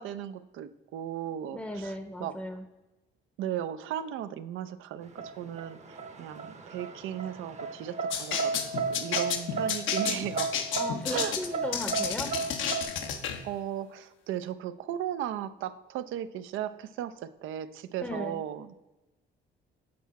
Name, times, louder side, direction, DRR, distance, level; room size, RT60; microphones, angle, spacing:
voice 1, 0.0-2.3 3.4-10.6 11.1-11.3 13.4-18.8, right 10 dB, 85° right, 12 dB, 0.5 m, -36 dB
voice 2, 1.5-2.7 10.7-12.3 18.0-18.4, left 1 dB, 10° left, 7 dB, 0.6 m, -36 dB
sound 1, 5.2-12.8, right 4 dB, 35° right, 0.8 m, -33 dB
sound 2, 8.1-13.4, left 7 dB, 80° left, 0.8 m, -32 dB
7.7 x 4.7 x 4.1 m, 1.1 s
cardioid pair, 90°, 20 cm